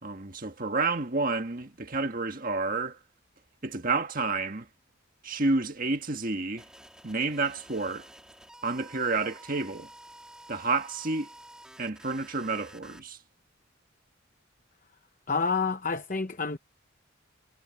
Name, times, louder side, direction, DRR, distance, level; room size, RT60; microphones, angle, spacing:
voice 1, 0.0-3.0 3.6-4.7 5.2-6.6 7.0-8.0 8.6-9.9 10.5-11.3 11.8-13.2, right 3 dB, 40° right, 1.7 m, -30 dB
sound 1, 6.6-13.0, right 1 dB, 5° right, 3.3 m, -51 dB
voice 2, 15.3-16.6, left 4 dB, 40° left, 0.9 m, -28 dB
head